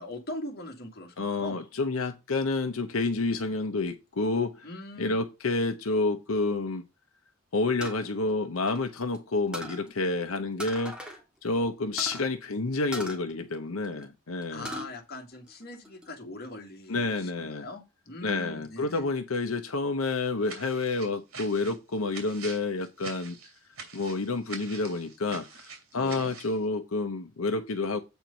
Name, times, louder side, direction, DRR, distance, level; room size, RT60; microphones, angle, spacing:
voice 1, 0.0-1.7 4.6-5.2 14.5-19.1 25.9-26.3, left 1 dB, 50° left, 1.8 m, -41 dB
voice 2, 1.2-4.7 5.0-6.8 7.5-11.0 11.4-14.7 16.9-17.7 18.2-23.4 23.9-28.0, left 3 dB, 85° left, 0.8 m, -29 dB
sound 1, 7.8-9.2 9.5-9.9 10.6-11.2 11.5-11.6 12.0-12.3 12.9-14.0 14.4-14.9 15.3-16.1, equal, 5° right, 1.6 m, -39 dB
sound 2, 20.4-26.6, right 5 dB, 85° right, 2.8 m, -45 dB
8.1 x 4.5 x 5.1 m
head